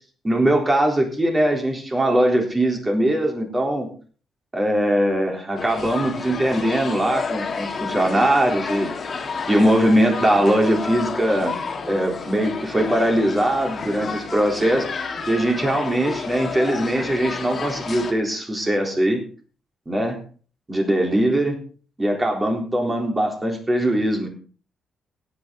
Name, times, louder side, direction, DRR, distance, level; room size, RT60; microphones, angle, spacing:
voice 1, 0.2-3.9 4.5-8.9 9.5-11.5 11.8-14.9 15.3-19.2 19.9-20.2 20.7-21.6 22.0-24.3, right 1 dB, 15° right, 1 dB, 3.9 m, -21 dB
sound 1, 5.6-18.1, left 5 dB, 35° left, 2.0 m, -30 dB
17.0 x 9.1 x 4.0 m, 0.41 s
cardioid pair, 140°, 0 cm